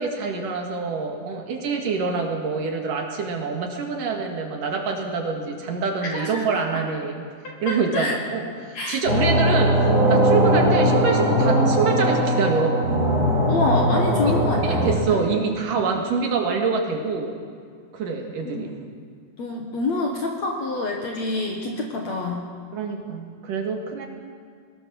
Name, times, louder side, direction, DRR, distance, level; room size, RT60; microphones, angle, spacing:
voice 1, 0.0-7.1 7.6-9.7 10.1-12.8 14.2-14.3 14.6-17.3 17.9-18.7 22.7-24.1, right 4 dB, 60° right, 2 dB, 3.2 m, -25 dB
voice 2, 6.0-6.6 7.7-8.2 8.7-9.0 13.5-15.2 18.4-18.7 19.4-22.4, left 2 dB, 55° left, 1 dB, 2.2 m, -27 dB
sound 1, 9.0-14.9, equal, 20° right, 4.0 m, -20 dB
21.5 x 19.5 x 6.3 m, 2.1 s
omnidirectional pair, 4.7 m